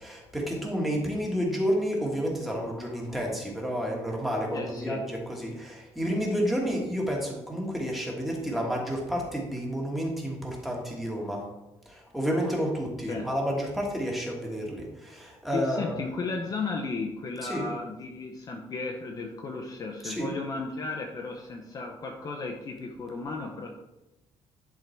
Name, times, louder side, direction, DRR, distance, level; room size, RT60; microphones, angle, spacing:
voice 1, 0.0-11.4 11.8-15.9 17.4-17.7 20.0-20.3, equal, ahead, -2 dB, 1.5 m, -30 dB
voice 2, 4.5-5.0 13.1-13.3 15.5-23.7, left 3 dB, 35° left, 2 dB, 0.7 m, -34 dB
10.5 x 3.8 x 4.4 m, 0.99 s
cardioid pair, 175°, 11 cm